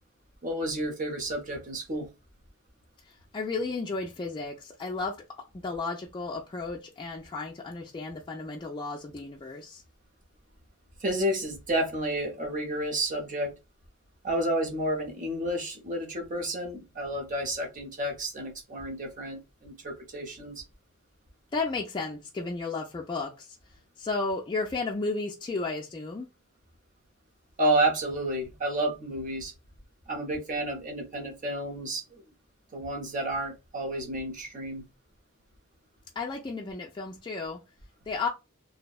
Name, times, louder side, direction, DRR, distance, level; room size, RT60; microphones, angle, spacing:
voice 1, 0.4-2.1 11.0-13.5 14.2-20.6 27.6-29.5 30.1-32.2 32.7-34.8, right 1 dB, 35° right, 0.8 m, -30 dB
voice 2, 3.1-5.2 5.6-9.8 21.5-23.6 24.0-26.3 36.2-37.6 38.1-38.3, left 3 dB, 20° left, 0.3 m, -33 dB
2.7 x 2.1 x 2.3 m
head